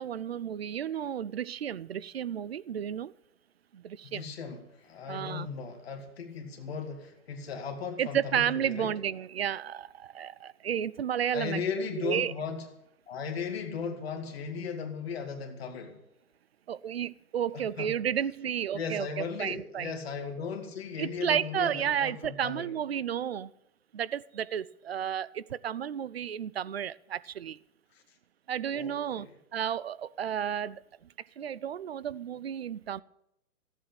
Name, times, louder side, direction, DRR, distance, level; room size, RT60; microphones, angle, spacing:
voice 1, 0.0-3.1 3.7-4.3 5.1-5.5 8.0-11.6 12.0-12.3 16.7-19.9 21.0-23.5 23.9-27.6 28.5-29.3 29.5-30.8 31.4-33.0, right 9 dB, 45° right, 0.5 m, -32 dB
voice 2, 4.0-8.9 11.3-12.7 13.1-16.0 17.5-17.9 18.7-22.7 27.9-28.0 28.7-29.4, left 6 dB, 45° left, 2.4 m, -37 dB
16.0 x 8.4 x 8.7 m
hypercardioid pair, 160°, 44 cm